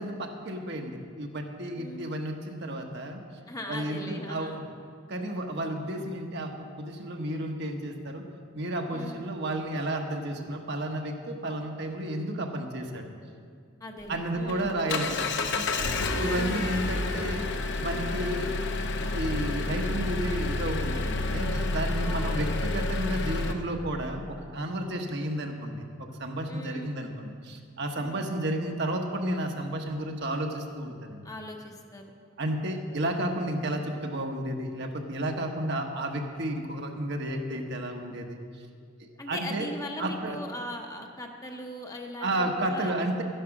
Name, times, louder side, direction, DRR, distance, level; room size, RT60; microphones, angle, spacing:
voice 1, 0.0-3.2 3.7-4.6 5.1-8.2 8.5-13.1 14.1-15.7 16.2-17.5 17.8-18.5 19.1-25.9 26.2-31.2 32.4-38.4 39.3-39.7 40.0-40.4 42.2-43.2, right 1 dB, 55° right, 3 dB, 1.2 m, -32 dB
voice 2, 1.8-2.1 3.5-4.6 8.9-9.2 13.8-14.8 16.3-16.7 22.0-22.5 26.5-26.9 28.0-28.3 31.2-32.0 39.2-43.2, left 1 dB, 15° left, 2 dB, 0.9 m, -40 dB
Engine, 14.0-23.5, left 2 dB, 60° left, 0.8 m, -29 dB
12.5 x 10.0 x 6.0 m, 2.2 s
head